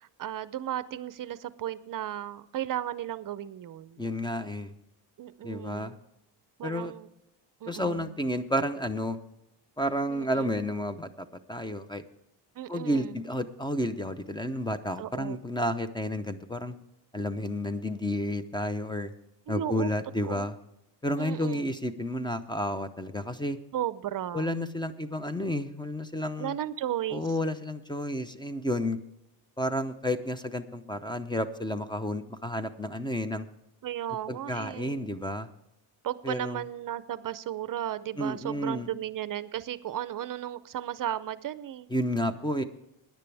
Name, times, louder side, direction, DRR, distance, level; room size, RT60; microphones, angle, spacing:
voice 1, 0.0-4.0 5.2-6.0 6.6-7.1 7.6-8.1 10.1-10.5 12.6-13.2 15.0-15.4 19.5-19.9 20.2-20.5 21.2-21.7 23.7-24.5 26.4-27.4 33.8-35.1 36.0-41.9, right 11 dB, 50° right, 15 dB, 0.6 m, -35 dB
voice 2, 4.0-4.7 5.4-5.9 6.6-6.9 7.7-9.2 9.8-11.1 11.5-12.0 12.7-16.7 17.1-19.1 19.5-20.5 21.0-23.6 24.3-26.6 27.1-29.0 29.6-33.5 34.3-35.5 36.2-36.6 38.2-38.9 41.9-42.6, left 1 dB, 10° left, 11 dB, 0.7 m, -31 dB
17.0 x 10.5 x 3.4 m, 0.86 s
cardioid pair, 115°, 42 cm